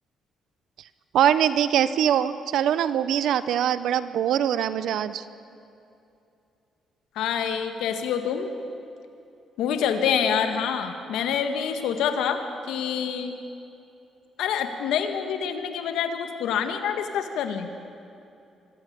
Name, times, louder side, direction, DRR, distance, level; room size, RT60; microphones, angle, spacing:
voice 1, 1.1-5.3, right 10 dB, 75° right, 14 dB, 0.9 m, -23 dB
voice 2, 7.1-8.5 9.6-13.3 14.4-17.7, left 7 dB, 85° left, 7 dB, 1.7 m, -26 dB
24.5 x 15.0 x 8.7 m, 2.7 s
cardioid pair, 90°, 0 cm